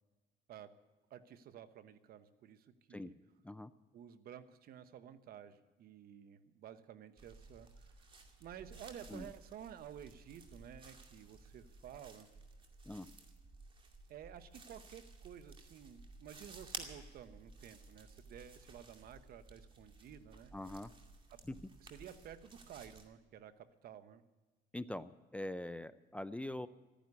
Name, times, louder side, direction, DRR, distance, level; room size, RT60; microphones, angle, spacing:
voice 1, 1.1-3.1 3.9-8.1 8.4-12.3 14.1-20.5 21.3-21.4 21.8-24.2, right 9 dB, 65° right, 12 dB, 1.0 m, -53 dB
sound 1, 7.2-23.1, right 3 dB, 30° right, 2.4 m, -55 dB
voice 2, 20.5-20.9 21.5-21.6 24.7-26.7, left 1 dB, 5° left, 14 dB, 0.4 m, -43 dB
14.0 x 10.5 x 9.5 m, 1.2 s
cardioid pair, 110°, 17 cm